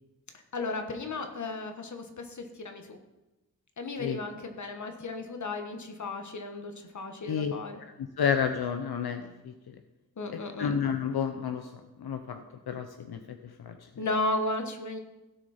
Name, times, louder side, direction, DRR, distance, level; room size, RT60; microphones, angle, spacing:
voice 1, 0.5-3.0 3.8-7.8 10.2-10.7 14.0-15.0, left 2 dB, 50° left, 5 dB, 1.4 m, -34 dB
voice 2, 8.2-9.5 10.3-11.7 12.0-13.8, left 7 dB, 80° left, 7 dB, 0.8 m, -31 dB
17.0 x 6.2 x 4.3 m, 1.0 s
wide cardioid pair, 135°, 38 cm